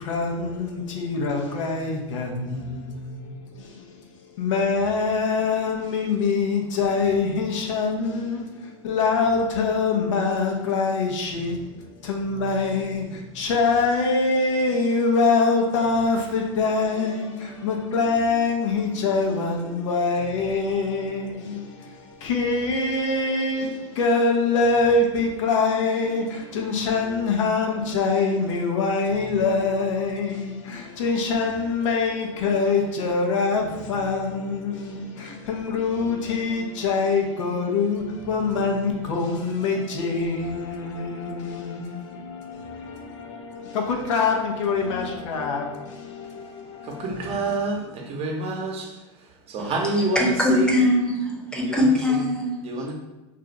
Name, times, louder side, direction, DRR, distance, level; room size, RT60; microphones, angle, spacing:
voice 1, 0.0-4.0 4.3-47.6, left 4 dB, 85° left, 0.7 m, -24 dB
voice 2, 46.9-48.9 49.5-50.2 50.5-50.7 51.5-51.8 52.6-52.9, right 2 dB, 40° right, 0.7 m, -27 dB
voice 3, 49.6-52.6, left 1 dB, 5° left, 0.8 m, -22 dB
2.5 x 2.4 x 4.0 m
supercardioid pair, 110°, 16 cm